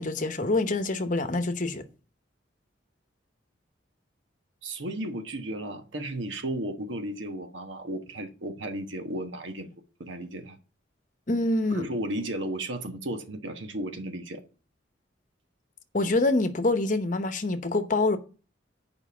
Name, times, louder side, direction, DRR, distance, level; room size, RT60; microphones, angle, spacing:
voice 1, 0.0-1.8 11.3-11.9 15.9-18.2, left 2 dB, 40° left, 0.9 m, -26 dB
voice 2, 4.6-9.7 10.0-10.6 11.7-14.4, right 1 dB, 80° right, 1.2 m, -34 dB
7.2 x 5.2 x 7.0 m
head